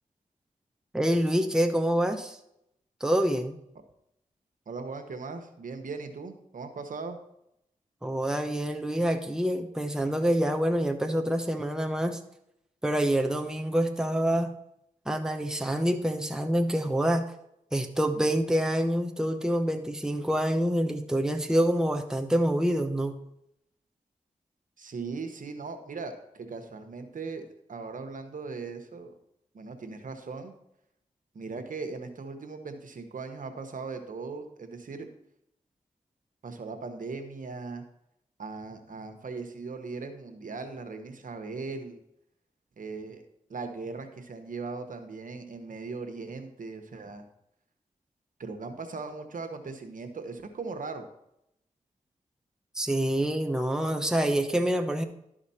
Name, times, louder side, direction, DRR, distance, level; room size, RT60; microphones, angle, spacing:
voice 1, 0.9-2.4 3.0-3.6 8.0-12.2 12.8-14.5 15.1-17.2 17.7-23.1 52.8-55.0, equal, 5° right, 5 dB, 0.9 m, -26 dB
voice 2, 4.7-7.2 24.8-29.2 29.5-30.5 31.3-35.1 36.4-37.8 38.4-42.0 42.8-43.2 43.5-47.2 48.4-51.1, right 4 dB, 65° right, 6 dB, 1.1 m, -39 dB
12.0 x 5.0 x 4.2 m, 0.79 s
cardioid pair, 55°, 15 cm